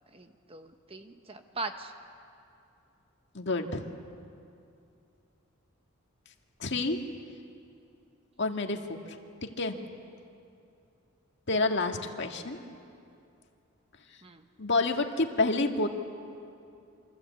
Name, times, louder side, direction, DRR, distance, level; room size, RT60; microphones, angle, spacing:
voice 1, 0.1-1.9 11.5-11.7 14.2-14.4, right 3 dB, 25° right, 7 dB, 1.2 m, -40 dB
voice 2, 3.4-3.8 6.6-7.0 8.4-8.8 9.6-9.8 11.5-12.6 14.6-15.9, left 3 dB, 55° left, 4 dB, 1.9 m, -28 dB
27.5 x 25.5 x 8.5 m, 2.6 s
head